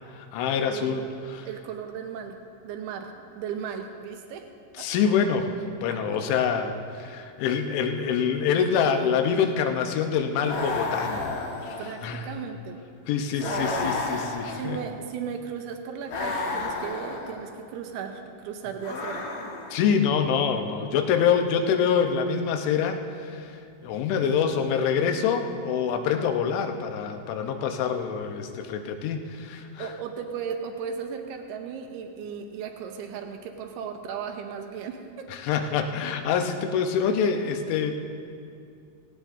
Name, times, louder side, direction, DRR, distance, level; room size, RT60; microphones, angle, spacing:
voice 1, 0.1-1.5 4.8-11.3 11.6-12.3 13.1-14.8 19.7-29.9 35.3-38.0, left 7 dB, 80° left, 5 dB, 3.2 m, -26 dB
voice 2, 0.6-1.0 1.4-2.4 2.6-4.4 4.8-4.9 5.9-6.0 11.8-12.8 13.4-13.7 14.5-19.3 24.2-24.3 29.8-35.3, right 7 dB, 80° right, 4 dB, 2.4 m, -36 dB
sound 1, 10.4-12.2 13.4-15.0 16.1-17.4 18.8-19.9, left 3 dB, 65° left, 3.0 m, -32 dB
17.5 x 17.5 x 2.6 m, 2.5 s
omnidirectional pair, 5.4 m